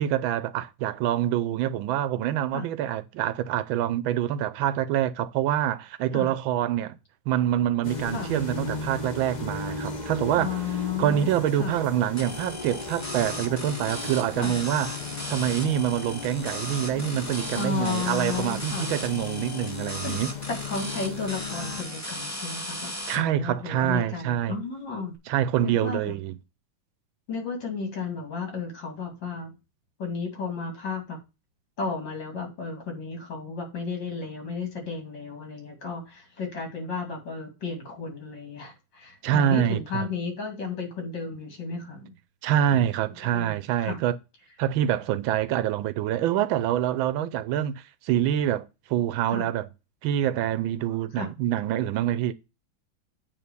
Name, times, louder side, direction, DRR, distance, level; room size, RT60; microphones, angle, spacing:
voice 1, 0.0-7.0 7.3-10.6 11.0-15.0 15.3-20.3 23.1-24.6 25.3-26.4 39.2-40.1 42.4-44.2 44.6-49.7 50.0-52.3, right 11 dB, 85° right, 1.4 m, -26 dB
sound 1, 7.8-21.8, left 4 dB, 30° left, 0.9 m, -36 dB
voice 2, 10.4-11.3 11.6-11.8 14.4-14.5 17.5-18.9 20.0-20.2 20.5-25.1 25.6-26.2 27.3-29.5 30.0-31.2 31.8-42.1 42.7-42.9 43.3-44.0 49.3-49.5 51.2-51.3, left 4 dB, 65° left, 3.2 m, -33 dB
sound 2, 12.2-23.2, equal, 10° left, 1.5 m, -37 dB
8.8 x 3.6 x 6.8 m
omnidirectional pair, 2.1 m